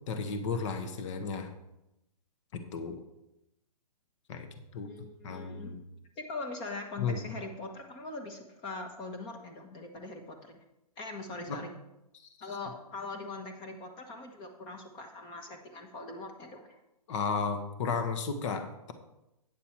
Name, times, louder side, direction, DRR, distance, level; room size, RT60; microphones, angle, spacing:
voice 1, 0.1-1.5 2.7-3.0 4.3-4.5 4.7-4.9 5.2-5.8 7.0-7.2 11.5-11.6 17.1-18.9, left 5 dB, 50° left, 7 dB, 1.2 m, -33 dB
voice 2, 4.8-5.8 6.2-10.6 11.0-11.7 12.4-16.8, left 3 dB, 25° left, 4 dB, 1.2 m, -42 dB
9.0 x 6.8 x 4.4 m, 0.89 s
hypercardioid pair, 135°, 20 cm